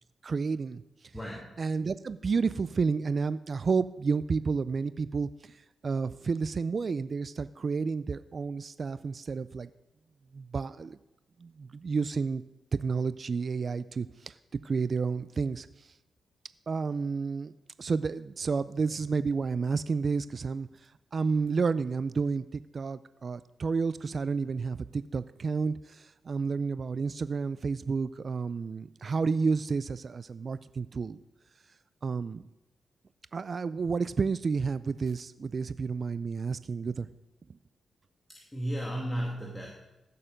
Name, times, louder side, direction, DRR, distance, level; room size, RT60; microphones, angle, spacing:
voice 1, 0.2-0.8 1.6-5.6 5.8-9.7 10.3-11.0 11.4-12.4 12.7-14.3 14.6-15.9 16.7-17.5 17.8-31.2 32.0-32.4 33.3-37.1, right 5 dB, 55° right, 15 dB, 0.4 m, -31 dB
voice 2, 1.1-1.6 38.3-39.7, equal, 15° left, -2 dB, 2.2 m, -34 dB
15.5 x 6.8 x 5.1 m, 0.96 s
cardioid pair, 55°, 0 cm